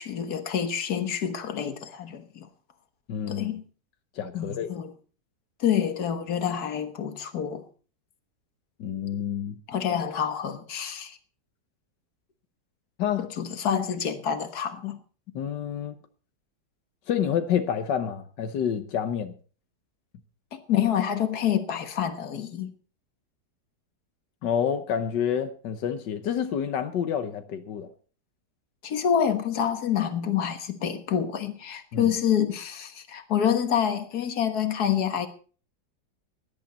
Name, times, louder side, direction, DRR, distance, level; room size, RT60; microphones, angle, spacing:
voice 1, 0.0-2.5 3.3-3.6 4.3-4.9 5.6-7.6 9.7-11.2 13.4-15.0 20.5-22.7 28.8-35.3, left 9 dB, 65° left, 1.9 m, -27 dB
voice 2, 3.1-3.5 4.1-4.7 8.8-9.6 13.0-13.3 15.3-15.9 17.1-19.3 24.4-27.9 31.9-32.1, left 8 dB, 90° left, 1.7 m, -28 dB
17.5 x 11.5 x 4.1 m
omnidirectional pair, 1.8 m